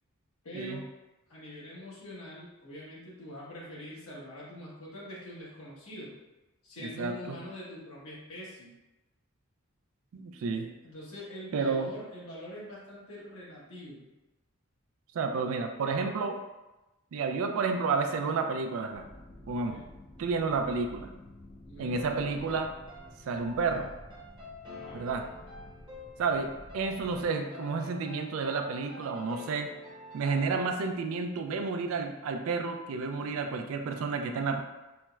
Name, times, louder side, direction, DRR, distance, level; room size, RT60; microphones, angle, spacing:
voice 1, 0.4-0.9 1.3-6.1 6.6-8.7 10.5-14.1 19.7-19.8 21.7-22.0 24.7-25.0, equal, 75° left, -7 dB, 1.1 m, -44 dB
voice 2, 6.8-7.4 10.1-10.7 11.5-11.9 15.1-16.4 17.1-19.1 19.5-19.8 20.2-21.1 21.8-22.7 23.3-23.9 24.9-25.2 26.2-29.7 30.1-34.6, right 4 dB, 70° right, 6 dB, 0.3 m, -31 dB
sound 1, 18.9-27.3, left 1 dB, 30° left, 0.3 m, -51 dB
sound 2, 21.9-30.8, left 1 dB, 20° right, 0.7 m, -47 dB
4.2 x 2.0 x 2.3 m, 1.1 s
head